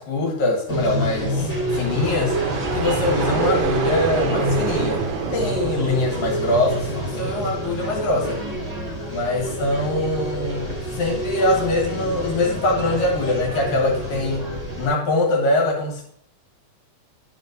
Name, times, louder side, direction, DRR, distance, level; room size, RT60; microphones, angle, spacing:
voice 1, 0.0-2.4 2.7-5.0 5.3-8.4 9.1-14.5 14.8-16.0, left 2 dB, 70° left, 0 dB, 2.8 m, -23 dB
sound 1, 0.7-14.9, equal, 20° right, 0.4 m, -28 dB
sound 2, 1.7-7.4, right 6 dB, 80° right, 2.6 m, -28 dB
10.0 x 7.1 x 2.6 m, 0.67 s
omnidirectional pair, 4.4 m